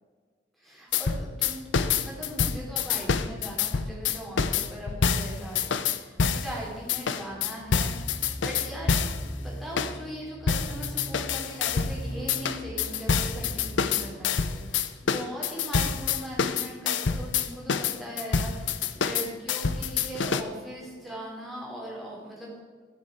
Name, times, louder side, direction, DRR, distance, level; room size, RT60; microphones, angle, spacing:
voice 1, 0.6-22.5, right 1 dB, ahead, -4 dB, 3.2 m, -40 dB
sound 1, 0.9-6.5 6.9-9.2 9.8-9.9 10.5-12.0 12.3-20.4, left 6 dB, 85° left, 0.6 m, -27 dB
sound 2, 7.3-14.5, equal, 70° right, 2.1 m, -40 dB
13.5 x 6.7 x 4.8 m, 1.5 s
head